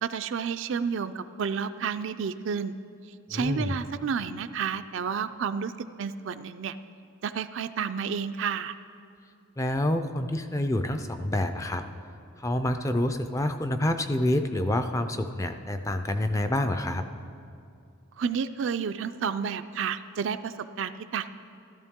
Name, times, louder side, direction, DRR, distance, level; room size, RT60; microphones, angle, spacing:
voice 1, 0.0-2.7 3.3-5.7 6.0-6.8 7.2-8.8 18.2-21.3, right 6 dB, 60° right, 11 dB, 0.4 m, -31 dB
voice 2, 3.3-3.7 9.6-11.8 12.4-17.0, left 1 dB, 15° left, 7 dB, 0.4 m, -27 dB
14.0 x 13.5 x 3.6 m, 2.5 s
head